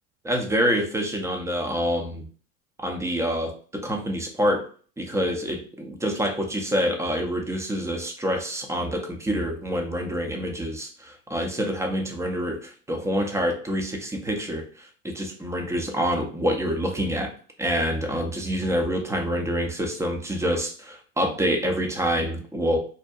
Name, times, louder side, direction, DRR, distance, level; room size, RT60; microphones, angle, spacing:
voice 1, 0.2-2.2 2.8-4.7 5.0-17.3 17.6-22.8, equal, 10° right, 3 dB, 0.5 m, -26 dB
2.7 x 2.1 x 2.3 m, 0.42 s
hypercardioid pair, 85°, 40 cm